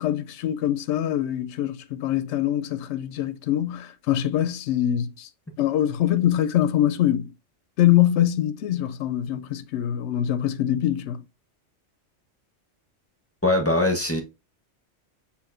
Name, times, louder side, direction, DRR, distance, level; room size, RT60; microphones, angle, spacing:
voice 1, 0.0-5.3 5.6-7.3 7.8-11.2, left 12 dB, 70° left, 0.8 m, -24 dB
voice 2, 13.4-14.2, left 2 dB, 15° left, 0.8 m, -21 dB
6.6 x 2.8 x 2.5 m
omnidirectional pair, 1.3 m